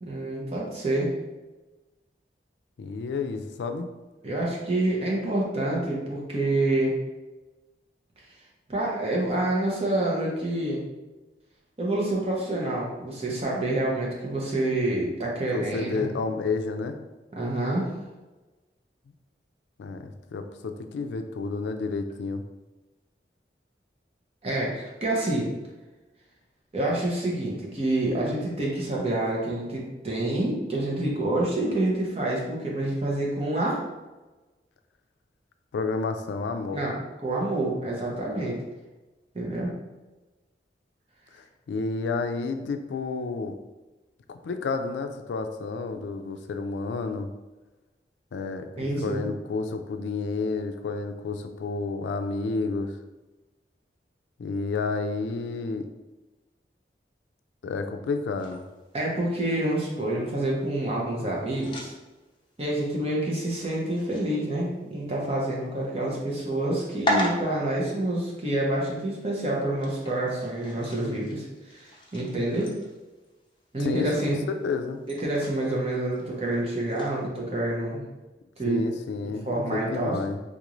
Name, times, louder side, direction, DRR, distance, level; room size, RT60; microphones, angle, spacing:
voice 1, 0.0-1.1 4.2-6.9 8.7-10.8 11.8-16.1 17.4-17.9 24.4-25.5 26.7-33.8 36.7-38.6 39.3-39.7 48.8-49.3 58.9-61.9 62.6-71.5 71.7-72.7 73.7-74.4 75.1-78.0 78.6-78.8 79.2-80.2, right 1 dB, 35° right, -3 dB, 0.8 m, -27 dB
voice 2, 2.8-3.9 15.5-17.0 19.8-22.4 35.7-36.8 41.4-43.5 44.3-47.3 48.3-52.9 54.4-55.9 57.6-58.6 73.8-74.1 74.5-75.0 78.6-80.4, left 4 dB, 90° left, 7 dB, 0.3 m, -30 dB
sound 1, 58.4-77.2, equal, 30° left, 0.6 m, -39 dB
3.8 x 2.5 x 3.0 m, 1.1 s
head